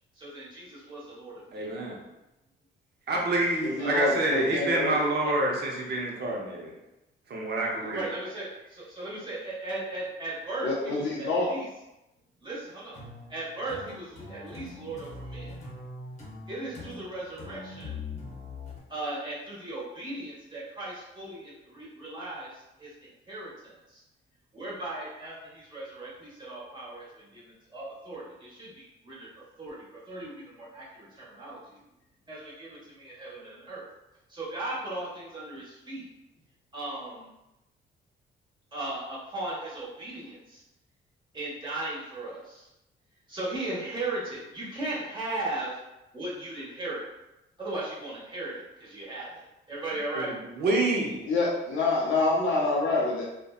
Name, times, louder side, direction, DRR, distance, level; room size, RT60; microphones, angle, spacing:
voice 1, 0.1-1.7 3.8-4.1 5.2-5.3 7.8-11.7 12.4-13.0 13.3-15.5 16.5-18.0 18.9-22.9 23.3-24.0 24.5-29.3 29.6-31.8 32.3-33.9 34.3-36.1 36.7-37.3 38.7-40.6 41.3-42.7 43.3-45.8 46.1-47.0 47.6-50.3, right 2 dB, 25° right, -7 dB, 1.1 m, -37 dB
voice 2, 1.5-2.0 3.1-6.7 7.3-8.1 50.1-50.2 50.5-51.2, right 2 dB, 55° right, -1 dB, 0.7 m, -27 dB
voice 3, 3.6-5.0 10.6-11.5 51.3-53.2, left 3 dB, 75° left, -5 dB, 0.5 m, -26 dB
sound 1, 12.9-18.8, left 3 dB, 35° left, 0.8 m, -42 dB
2.6 x 2.1 x 2.3 m, 0.93 s
cardioid pair, 90°, 20 cm